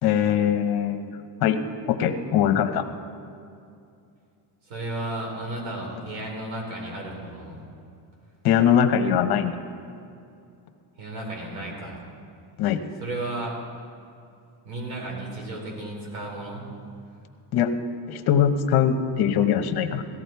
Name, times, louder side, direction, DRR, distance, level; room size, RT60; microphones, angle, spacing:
voice 1, 0.0-1.1 1.4-1.6 1.9-2.8 8.4-9.5 12.6-12.8 17.5-17.7 18.1-20.0, left 9 dB, 55° left, 7 dB, 1.0 m, -21 dB
voice 2, 4.7-7.6 11.0-12.0 13.0-13.6 14.6-16.7, right 2 dB, 80° right, -1 dB, 4.5 m, -33 dB
17.5 x 14.0 x 4.6 m, 2.5 s
cardioid pair, 160°, 45 cm